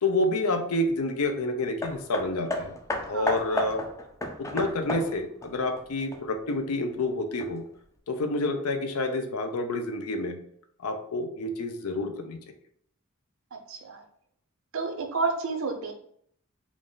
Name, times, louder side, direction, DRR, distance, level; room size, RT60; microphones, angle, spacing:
voice 1, 0.0-2.7 3.1-3.8 4.5-7.6 8.1-10.4 10.8-12.4, left 2 dB, 85° left, 6 dB, 0.6 m, -28 dB
Hammer, 1.8-6.5 7.4-7.5, left 1 dB, 15° left, 0.4 m, -33 dB
voice 2, 3.1-3.6 13.5-14.0 14.7-15.9, right 4 dB, 65° right, 5 dB, 0.6 m, -31 dB
3.6 x 2.5 x 3.8 m, 0.66 s
head